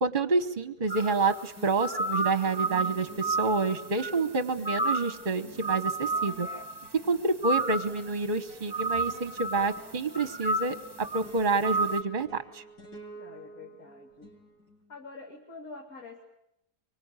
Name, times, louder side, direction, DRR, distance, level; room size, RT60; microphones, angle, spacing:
voice 1, 0.0-6.5 6.9-12.6, right 3 dB, 35° right, 10 dB, 1.2 m, -28 dB
sound 1, 0.8-1.2 1.6-15.0, right 1 dB, 90° left, 7.0 m, -50 dB
sound 2, 0.9-1.4 1.8-4.3 4.6-5.2 5.6-6.9 7.4-8.1 8.7-9.9 10.1-11.3 11.6-12.0, right 2 dB, 20° right, 1.0 m, -31 dB
voice 2, 13.1-14.3 14.9-16.2, left 3 dB, 60° left, 0 dB, 3.0 m, -46 dB
25.0 x 24.0 x 9.0 m, 0.84 s
omnidirectional pair, 1.7 m